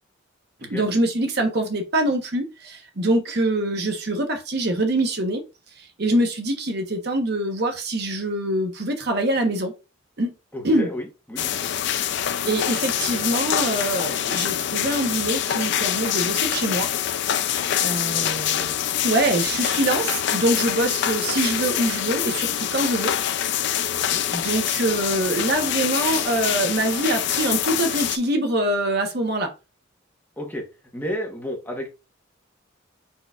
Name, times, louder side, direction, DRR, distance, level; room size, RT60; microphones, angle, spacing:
voice 1, 0.7-5.4 5.8-9.7 10.2-10.3 10.6-10.9 12.4-16.9 17.8-18.7 19.0-23.1 24.3-29.5, right 1 dB, 50° right, 0.9 m, -24 dB
voice 2, 10.5-11.6 18.1-18.4 23.9-24.2 30.4-30.6 30.9-31.9, equal, 10° left, 1.1 m, -32 dB
sound 1, 11.4-28.2, left 10 dB, 55° left, 0.3 m, -25 dB
4.6 x 4.5 x 2.3 m
head